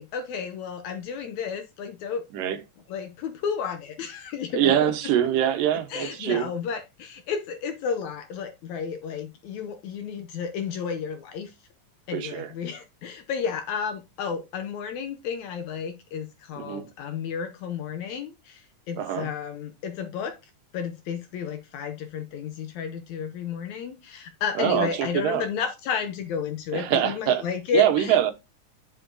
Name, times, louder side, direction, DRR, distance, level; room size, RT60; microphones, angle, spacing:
voice 1, 0.0-2.2 2.9-4.9 5.9-11.5 12.1-20.4 20.7-28.3, left 6 dB, 75° left, 1.8 m, -32 dB
voice 2, 4.5-6.5 12.1-12.5 16.6-16.9 19.0-19.3 24.6-25.4 26.7-27.4 27.7-28.3, right 10 dB, 80° right, 2.6 m, -24 dB
10.0 x 6.2 x 2.6 m
omnidirectional pair, 3.9 m